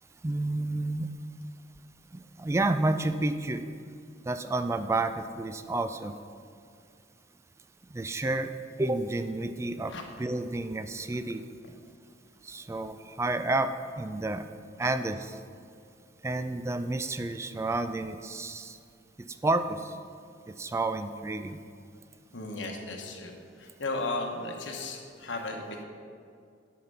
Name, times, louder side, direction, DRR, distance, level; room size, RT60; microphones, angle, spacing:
voice 1, 0.2-1.1 2.1-3.6 4.2-6.2 7.9-8.5 8.8-11.4 12.4-14.5 14.8-15.4 16.2-18.8 19.2-20.0 20.5-21.6, right 2 dB, 15° right, 10 dB, 0.3 m, -30 dB
voice 2, 22.3-23.3 23.6-25.8, left 2 dB, 70° left, 2 dB, 1.1 m, -35 dB
8.4 x 5.9 x 5.4 m, 2.3 s
head